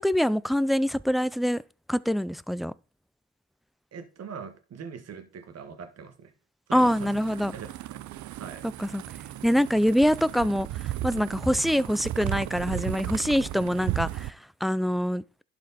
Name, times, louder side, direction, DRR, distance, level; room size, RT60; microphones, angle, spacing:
voice 1, 0.0-1.6 1.9-2.7 6.7-7.5 8.8-9.0 9.4-10.7 11.0-15.2, equal, ahead, 0.4 m, -24 dB
voice 2, 3.9-6.3 6.7-7.1 7.5-8.0 8.4-8.7, right 6 dB, 55° right, 1.8 m, -42 dB
sound 1, 6.8-14.3, right 14 dB, 70° right, 0.6 m, -35 dB
11.5 x 5.3 x 4.2 m
cardioid pair, 90°, 30 cm